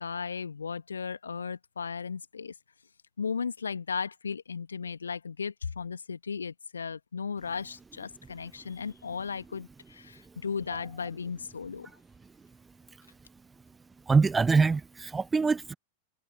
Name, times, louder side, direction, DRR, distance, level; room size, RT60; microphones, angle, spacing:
voice 1, 0.0-2.5 3.2-11.9, left 5 dB, 75° left, 1.9 m, -36 dB
voice 2, 14.1-15.7, right 4 dB, 15° right, 1.1 m, -24 dB
figure-of-eight pair, 90°, 0 cm